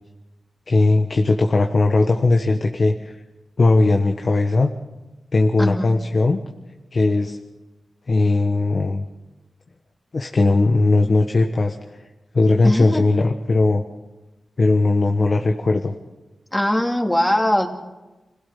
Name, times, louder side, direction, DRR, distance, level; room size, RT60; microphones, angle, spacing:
voice 1, 0.7-3.1 3.6-4.7 5.3-6.4 6.9-7.4 8.1-9.1 10.1-11.7 12.3-13.8 14.6-15.9, left 3 dB, 55° left, 4 dB, 1.4 m, -18 dB
voice 2, 5.6-5.9 12.6-13.1 16.5-17.7, left 1 dB, 10° left, 3 dB, 2.6 m, -20 dB
26.5 x 17.0 x 5.9 m, 1.1 s
cardioid pair, 50°, 0 cm